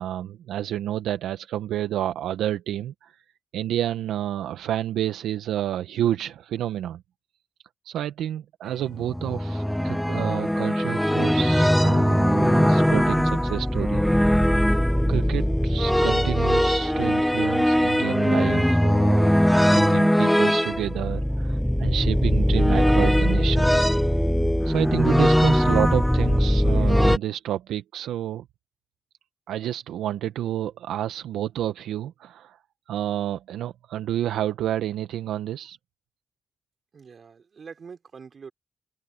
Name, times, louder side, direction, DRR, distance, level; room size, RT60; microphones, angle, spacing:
voice 1, 0.0-3.2 3.5-7.0 7.8-14.1 15.1-19.3 19.7-23.7 24.6-28.5 29.5-32.6 32.9-35.8, right 11 dB, 85° right, 0.9 m, -29 dB
sound 1, 8.9-27.2, equal, 5° left, 0.4 m, -20 dB
voice 2, 36.9-38.5, right 6 dB, 60° right, 4.4 m, -44 dB
open air
supercardioid pair, 40°, 0 cm